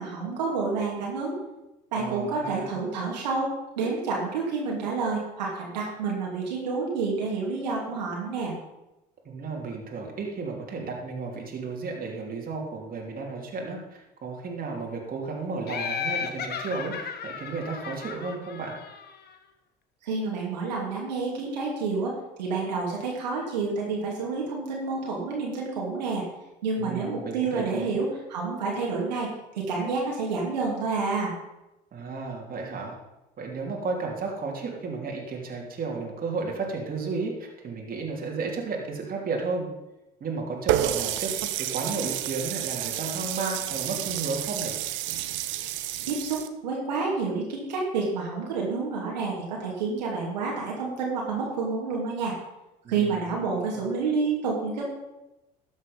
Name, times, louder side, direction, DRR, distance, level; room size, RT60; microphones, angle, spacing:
voice 1, 0.0-1.4 1.9-3.5 3.8-8.5 20.0-26.2 26.6-29.3 29.5-31.3 46.0-52.3 52.9-54.8, right 4 dB, 85° right, -3 dB, 2.8 m, -29 dB
voice 2, 2.0-2.8 9.2-18.7 26.8-27.9 31.9-32.9 33.4-39.7 40.2-44.7 52.8-53.3, right 4 dB, 45° right, -1 dB, 3.2 m, -33 dB
Laughter, 15.7-19.3, left 6 dB, 50° left, 1.5 m, -34 dB
Water tap faucet, 40.7-46.5, right 13 dB, 65° right, 0.9 m, -30 dB
13.0 x 7.5 x 5.5 m, 0.97 s
hypercardioid pair, 65°, 21 cm